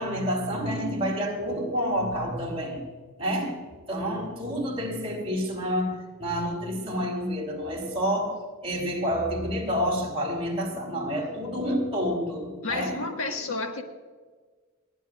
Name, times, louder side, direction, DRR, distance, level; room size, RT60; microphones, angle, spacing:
voice 1, 0.0-2.8 3.2-3.6 3.9-13.4, equal, 25° right, -2 dB, 3.4 m, -29 dB
voice 2, 12.6-13.8, left 3 dB, 70° left, 3 dB, 1.6 m, -31 dB
29.5 x 10.0 x 2.4 m, 1.4 s
head